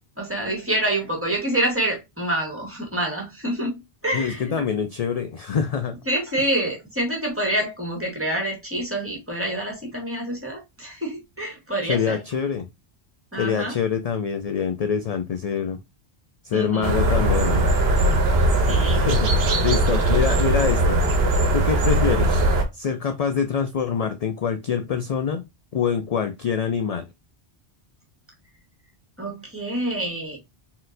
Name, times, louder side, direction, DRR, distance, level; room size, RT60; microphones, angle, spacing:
voice 1, 0.2-3.8 4.0-4.5 6.1-12.2 13.3-13.7 16.5-17.0 18.7-19.1 29.2-30.4, right 1 dB, 10° right, 1.8 m, -27 dB
voice 2, 4.1-6.0 11.9-12.7 13.4-15.8 16.4-17.7 18.9-19.3 19.6-21.0 21.5-22.4 22.7-25.4 25.7-27.1, left 7 dB, 55° left, 0.4 m, -25 dB
sound 1, 16.8-22.6, right 1 dB, 70° right, 1.2 m, -20 dB
4.3 x 3.9 x 2.5 m
omnidirectional pair, 1.1 m